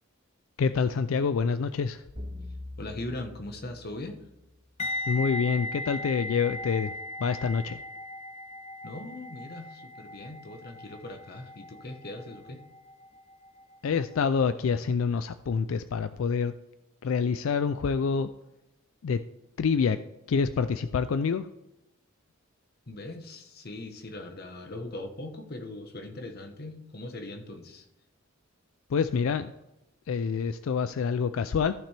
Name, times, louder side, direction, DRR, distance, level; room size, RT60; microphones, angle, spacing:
voice 1, 0.6-2.0 5.1-6.9 7.2-7.8 13.8-16.5 17.0-18.3 19.0-19.2 19.6-20.0 20.3-21.5 28.9-29.5 30.1-31.7, left 5 dB, 70° left, 12 dB, 0.4 m, -27 dB
sound 1, 2.2-4.6, left 1 dB, 45° right, 2.8 m, -43 dB
voice 2, 2.8-4.2 8.8-12.6 22.9-27.9, left 2 dB, 50° left, 6 dB, 1.1 m, -40 dB
sound 2, 4.8-13.8 14.0-14.3, left 1 dB, 30° left, 0.7 m, -38 dB
14.0 x 6.0 x 3.3 m, 0.94 s
head